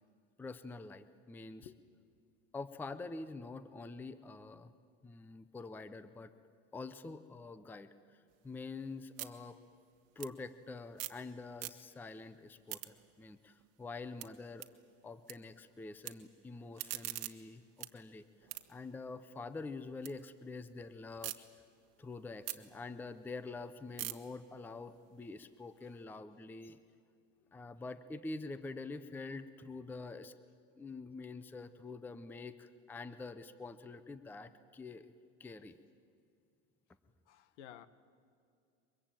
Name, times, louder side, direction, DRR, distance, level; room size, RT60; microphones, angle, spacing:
voice 1, 0.4-1.7 2.5-4.7 5.0-6.3 6.7-7.9 8.4-9.6 10.2-14.7 15.0-18.3 18.7-21.4 22.0-26.8 27.5-30.3 30.8-35.1 35.4-35.8, left 3 dB, 5° left, 13 dB, 0.5 m, -46 dB
sound 1, 8.3-11.3 11.5-12.1 12.5-15.3 15.6-16.1 16.5-20.1 20.5-21.4 21.8-26.0, right 17 dB, 45° right, 1.3 m, -47 dB
voice 2, 37.3-37.9, left 10 dB, 70° left, 15 dB, 1.4 m, -52 dB
23.5 x 22.0 x 9.0 m, 2.3 s
supercardioid pair, 145°, 36 cm